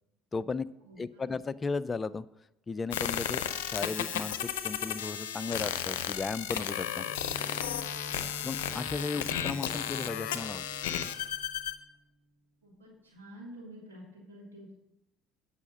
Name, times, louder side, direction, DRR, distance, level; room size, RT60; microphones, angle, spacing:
voice 1, 0.3-0.7 1.0-2.2 2.7-7.1 8.4-10.6, left 4 dB, 25° left, 15 dB, 0.4 m, -35 dB
voice 2, 0.8-1.4 12.6-14.8, equal, 90° right, -6 dB, 2.7 m, -49 dB
sound 1, 2.9-11.8, left 10 dB, 75° left, 0.6 m, -34 dB
Bowed string instrument, 7.0-12.0, left 1 dB, 5° left, 1.8 m, -46 dB
8.3 x 5.7 x 7.4 m, 0.89 s
hypercardioid pair, 65°, 0 cm